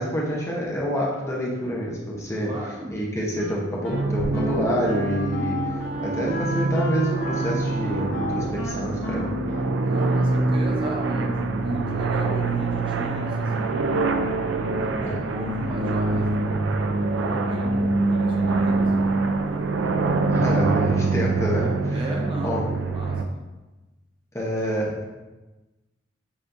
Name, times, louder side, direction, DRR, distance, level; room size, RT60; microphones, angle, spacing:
voice 1, 0.0-2.5 2.9-5.6 6.0-9.3 14.9-15.2 20.3-22.0 22.4-22.7 24.3-25.2, equal, 15° left, -3 dB, 0.7 m, -27 dB
voice 2, 2.4-3.0 9.8-13.8 14.8-19.4 21.9-22.6 22.9-23.3, right 1 dB, 25° right, -1 dB, 0.6 m, -35 dB
Wind instrument woodwind instrument, 3.4-10.8, left 1 dB, 80° left, 0.7 m, -33 dB
sound 1, 3.9-23.2, right 3 dB, 75° right, 0.4 m, -25 dB
6.8 x 2.5 x 2.6 m, 1.1 s
head